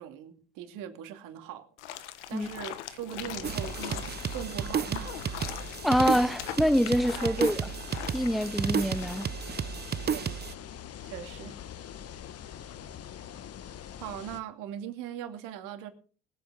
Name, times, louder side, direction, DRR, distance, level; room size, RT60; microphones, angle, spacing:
voice 1, 0.0-5.7 7.2-7.5 10.1-10.4 11.0-11.6 14.0-15.9, right 10 dB, 70° right, 2.6 m, -41 dB
sound 1, 1.8-9.3, left 12 dB, 85° left, 1.2 m, -42 dB
sound 2, 3.2-14.4, left 9 dB, 45° left, 1.2 m, -44 dB
sound 3, 3.4-10.5, right 7 dB, 30° right, 0.8 m, -33 dB
voice 2, 5.8-7.7 8.1-9.3, equal, ahead, 0.7 m, -25 dB
20.5 x 8.5 x 5.0 m
hypercardioid pair, 70°, 33 cm